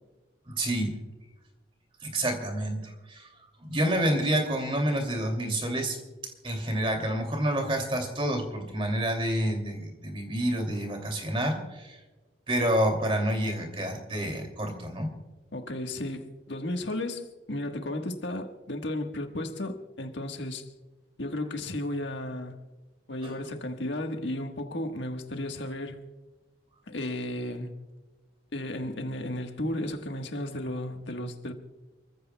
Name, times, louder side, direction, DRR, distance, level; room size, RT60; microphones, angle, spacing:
voice 1, 0.5-1.0 2.0-3.3 3.6-12.0 12.5-15.1 23.2-23.4, right 1 dB, 30° right, 2.7 m, -28 dB
voice 2, 15.5-20.7 21.2-22.6 23.1-26.0 26.9-27.7 28.5-31.5, left 1 dB, 80° left, 1.4 m, -34 dB
28.0 x 15.0 x 2.3 m
head